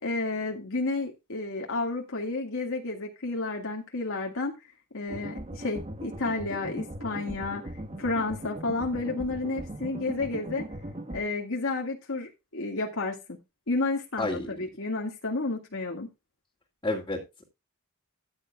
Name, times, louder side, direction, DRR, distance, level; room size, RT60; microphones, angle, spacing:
voice 1, 0.0-4.5 4.9-7.7 8.0-10.7 11.1-13.2 13.7-16.1, left 3 dB, 65° left, 1 dB, 2.1 m, -31 dB
sound 1, 5.1-11.2, right 1 dB, 30° right, 1.5 m, -39 dB
voice 2, 14.2-14.5 16.8-17.4, left 2 dB, 20° left, -2 dB, 2.6 m, -30 dB
14.5 x 9.8 x 2.4 m, 0.24 s
head